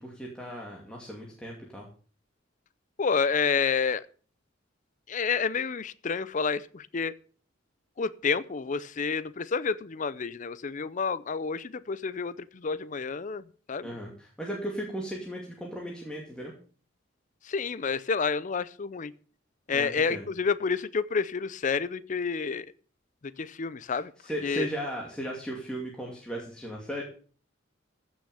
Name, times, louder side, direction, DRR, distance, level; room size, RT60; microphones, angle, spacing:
voice 1, 0.0-1.9 13.8-16.5 19.7-20.3 23.9-27.0, right 1 dB, 5° left, -2 dB, 2.4 m, -36 dB
voice 2, 3.0-4.0 5.1-7.1 8.0-12.3 12.6-13.4 13.7-13.9 17.5-19.1 19.7-22.7 23.4-24.1 24.4-24.7, left 5 dB, 40° left, 17 dB, 0.5 m, -29 dB
15.5 x 6.3 x 6.9 m, 0.42 s
head